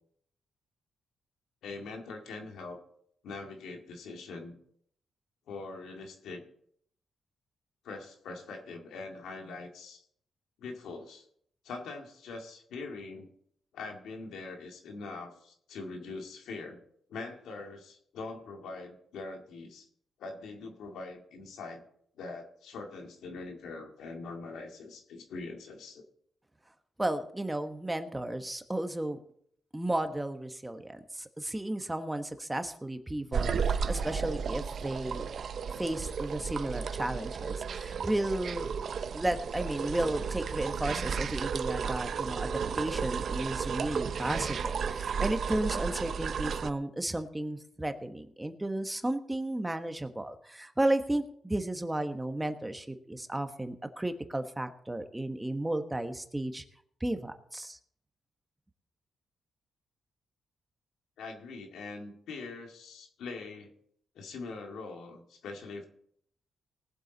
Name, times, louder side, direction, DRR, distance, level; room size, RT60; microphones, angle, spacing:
voice 1, 1.6-2.8 3.2-4.6 5.5-6.4 7.8-10.0 10.6-11.3 11.6-13.3 13.7-16.8 17.1-19.9 20.2-21.8 22.2-26.0 61.2-63.7 64.2-65.9, left 3 dB, 85° left, 2 dB, 2.1 m, -43 dB
voice 2, 27.0-29.2 29.7-35.3 35.8-38.7 39.1-56.6 57.0-57.8, right 1 dB, 15° right, 8 dB, 1.2 m, -33 dB
sound 1, 33.3-46.7, right 6 dB, 65° right, 0.6 m, -33 dB
19.0 x 7.7 x 4.0 m, 0.67 s
cardioid pair, 70°, 0 cm